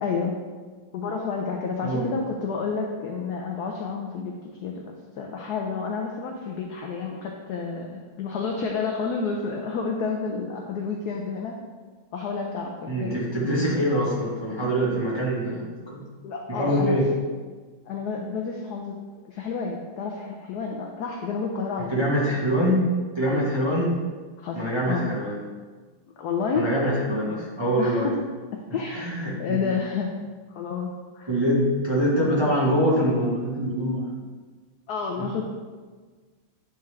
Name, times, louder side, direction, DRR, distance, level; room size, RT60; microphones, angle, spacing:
voice 1, 0.0-0.3 0.9-4.3 4.6-11.6 12.1-13.9 16.2-17.0 17.9-19.0 19.2-22.1 23.2-23.5 24.4-25.1 26.2-26.7 27.8-28.2 28.5-29.1 29.4-30.1 30.5-30.9 31.1-31.4 34.9-35.4, left 5 dB, 80° left, 1 dB, 0.9 m, -30 dB
voice 2, 12.9-16.0 16.5-17.1 21.9-23.9 24.5-25.3 26.5-28.1 28.9-29.6 31.3-34.1 35.2-35.3, equal, 20° right, -7 dB, 0.7 m, -24 dB
9.0 x 3.5 x 3.2 m, 1.4 s
omnidirectional pair, 2.3 m